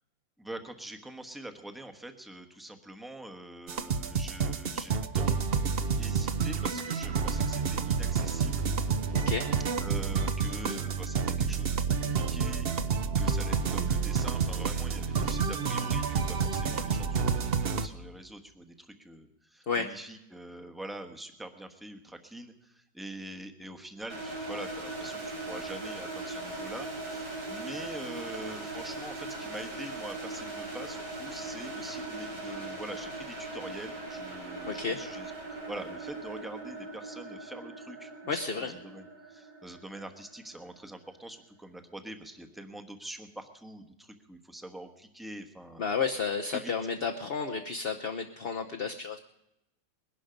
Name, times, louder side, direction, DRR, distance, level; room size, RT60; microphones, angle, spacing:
voice 1, 0.4-5.4 6.0-8.6 9.8-45.8 46.5-46.7, right 1 dB, ahead, 5 dB, 0.9 m, -44 dB
sound 1, 3.7-17.9, right 5 dB, 50° right, 0.7 m, -29 dB
voice 2, 9.1-9.5 19.7-19.9 34.7-35.0 38.3-38.7 45.8-49.2, left 5 dB, 45° left, 5 dB, 0.8 m, -32 dB
sound 2, 24.1-40.9, right 2 dB, 70° right, 4.7 m, -40 dB
21.0 x 11.5 x 5.2 m, 0.86 s
omnidirectional pair, 1.9 m